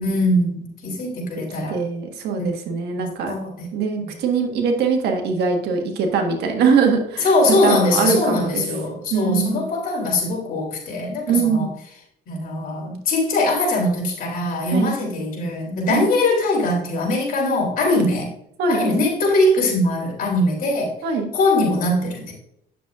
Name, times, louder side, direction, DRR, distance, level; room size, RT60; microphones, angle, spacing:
voice 1, 0.0-1.8 2.4-2.5 2.9-3.7 4.0-4.1 7.2-11.7 12.3-18.3 18.7-20.9 21.3-22.3, left 2 dB, 55° left, -1 dB, 3.2 m, -21 dB
voice 2, 1.7-3.3 3.7-7.3 7.6-8.6 9.1-9.7 11.3-11.7 14.7-14.9 15.9-16.0 17.8-18.0 18.6-18.8 21.0-21.3, right 5 dB, 80° right, 3 dB, 1.6 m, -22 dB
9.3 x 7.1 x 2.5 m, 0.73 s
cardioid pair, 110°, 17 cm